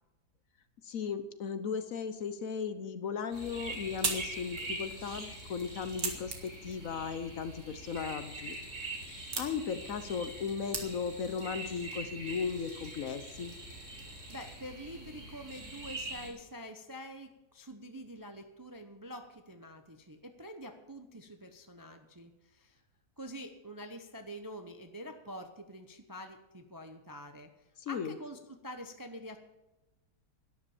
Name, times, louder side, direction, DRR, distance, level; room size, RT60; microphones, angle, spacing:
voice 1, 0.8-8.6 9.4-13.5 27.8-28.2, left 6 dB, 60° left, 11 dB, 1.1 m, -36 dB
sound 1, 3.3-16.3, right 2 dB, 45° right, 5.0 m, -44 dB
sound 2, 3.3-11.3, right 4 dB, 80° right, 2.5 m, -42 dB
voice 2, 14.3-22.8 23.2-27.5 27.9-29.4, equal, 20° right, 6 dB, 0.5 m, -46 dB
12.0 x 10.0 x 7.1 m, 1.0 s
omnidirectional pair, 1.8 m